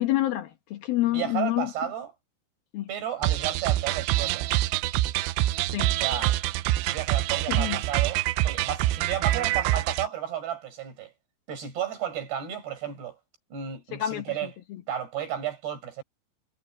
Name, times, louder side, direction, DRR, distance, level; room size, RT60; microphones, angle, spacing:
voice 1, 0.0-1.7 2.7-2.9 5.7-5.9 7.5-7.8 13.9-14.5, left 15 dB, 70° left, 2.3 m, -27 dB
voice 2, 1.1-2.1 2.9-4.5 5.9-6.3 6.9-11.1 11.5-13.2 13.5-14.5 14.9-16.0, right 9 dB, 55° right, 8.5 m, -33 dB
sound 1, 3.2-10.1, right 16 dB, 80° right, 3.2 m, -26 dB
omnidirectional pair, 5.9 m